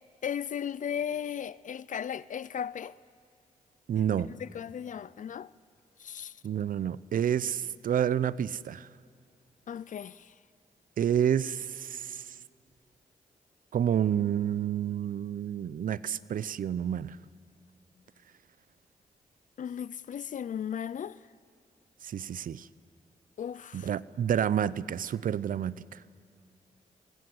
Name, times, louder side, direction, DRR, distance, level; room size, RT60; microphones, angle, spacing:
voice 1, 0.2-3.0 4.4-5.5 6.0-6.4 9.7-10.3 19.6-21.2 23.4-23.9, left 8 dB, 60° left, 0.5 m, -36 dB
voice 2, 3.9-4.3 6.4-8.9 11.0-12.4 13.7-17.2 22.0-22.7 23.7-26.0, right 9 dB, 65° right, 0.6 m, -29 dB
24.5 x 20.0 x 7.9 m
cardioid pair, 55°, 15 cm